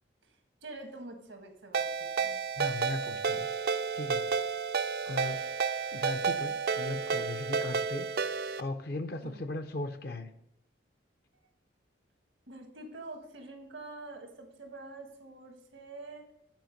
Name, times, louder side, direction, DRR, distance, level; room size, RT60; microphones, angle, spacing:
voice 1, 0.6-1.9 2.2-2.4 9.2-9.4 12.5-16.3, right 2 dB, 90° right, 4 dB, 1.5 m, -46 dB
Ringtone, 1.7-8.6, right 5 dB, 55° right, 0.4 m, -31 dB
voice 2, 2.6-3.5 4.0-4.2 5.1-5.4 5.9-8.1 8.6-10.3, left 2 dB, 55° left, 8 dB, 0.5 m, -37 dB
9.1 x 4.9 x 5.1 m, 0.80 s
head